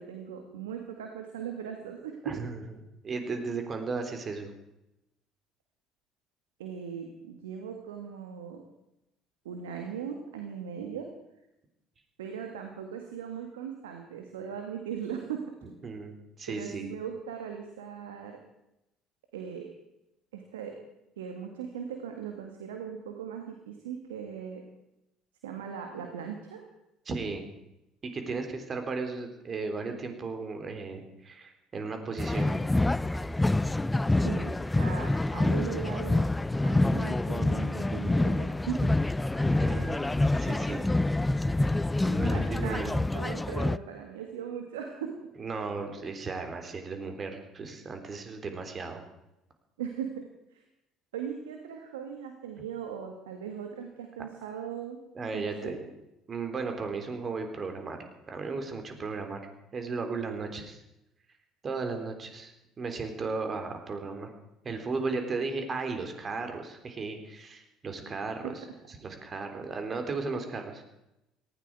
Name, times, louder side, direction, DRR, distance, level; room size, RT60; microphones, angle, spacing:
voice 1, 0.0-2.4 6.6-8.6 9.5-11.1 12.2-15.4 16.5-18.4 19.3-19.7 20.3-20.8 21.2-24.6 25.4-26.6 34.1-36.3 36.6-39.0 42.2-45.3 49.8-50.6 51.1-55.0 55.3-55.7 68.4-68.5, right 8 dB, 80° right, 4 dB, 1.9 m, -39 dB
voice 2, 2.2-2.6 3.0-4.5 15.8-16.9 27.1-27.5 28.0-32.5 39.4-40.8 42.0-43.0 45.4-49.0 55.2-55.8 56.3-58.0 58.3-59.4 59.7-60.8 61.6-62.5 62.8-64.3 64.6-70.8, right 4 dB, 35° right, 6 dB, 3.7 m, -35 dB
sound 1, 32.2-43.8, left 2 dB, 10° left, 0.5 m, -27 dB
18.5 x 16.0 x 4.9 m, 0.89 s
hypercardioid pair, 60°, 0 cm